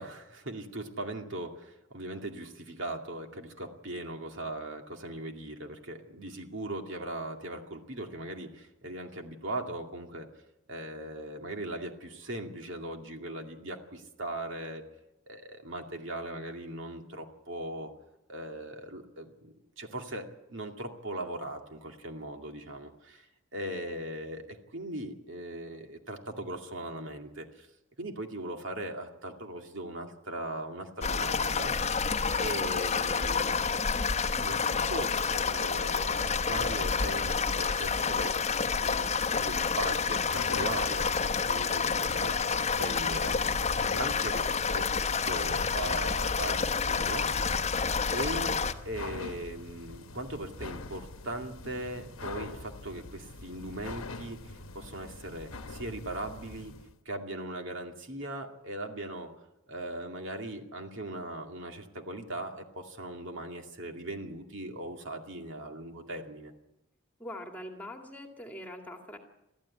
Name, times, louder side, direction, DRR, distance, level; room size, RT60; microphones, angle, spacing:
voice 1, 0.0-10.3 10.7-14.8 15.3-17.9 18.3-27.7 28.0-32.0 32.4-33.6 34.3-35.1 35.4-38.3 38.8-43.7 44.0-44.9 45.2-47.7 48.1-48.5 48.8-56.7 57.1-59.3 59.7-66.5, right 1 dB, 65° right, 3 dB, 2.4 m, -39 dB
sound 1, 31.0-48.7, left 5 dB, 30° left, 0.9 m, -29 dB
sound 2, 39.7-56.9, left 3 dB, 80° left, 1.1 m, -44 dB
voice 2, 67.2-69.2, left 1 dB, 10° left, 3 dB, 2.3 m, -43 dB
22.5 x 14.0 x 8.7 m, 0.91 s
head